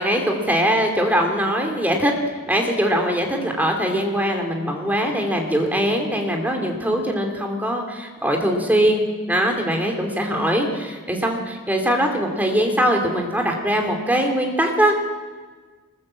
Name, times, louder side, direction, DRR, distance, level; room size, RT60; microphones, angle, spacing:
voice 1, 0.0-2.1 2.5-9.0 9.3-15.0, equal, 10° right, 2 dB, 2.7 m, -21 dB
25.0 x 20.5 x 7.6 m, 1.5 s
head